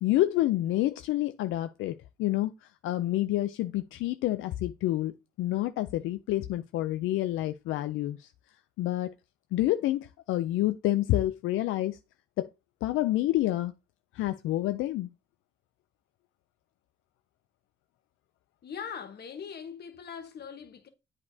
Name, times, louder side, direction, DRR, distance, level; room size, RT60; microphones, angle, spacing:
voice 1, 0.0-5.1 5.4-8.3 8.8-9.1 9.5-12.0 12.4-12.5 12.8-13.7 14.1-15.1, left 15 dB, 85° left, 0.4 m, -28 dB
voice 2, 18.6-20.9, left 7 dB, 55° left, 1.2 m, -41 dB
8.5 x 4.9 x 2.7 m
cardioid pair, 90°, 20 cm